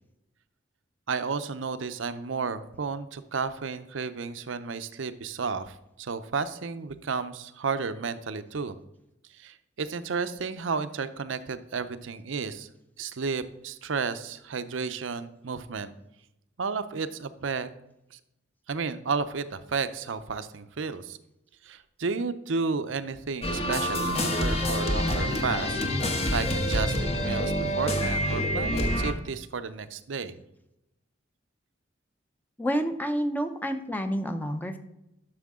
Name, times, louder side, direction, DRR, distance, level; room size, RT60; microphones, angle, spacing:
voice 1, 1.1-8.8 9.3-12.7 13.0-15.9 16.6-17.7 18.1-18.2 18.7-21.2 21.6-25.8 26.3-30.4, right 5 dB, 75° right, 12 dB, 0.6 m, -32 dB
sound 1, 23.4-29.1, equal, 35° left, 1.0 m, -27 dB
voice 2, 32.6-34.8, equal, 10° left, 8 dB, 0.7 m, -29 dB
11.5 x 6.4 x 3.6 m, 0.85 s
head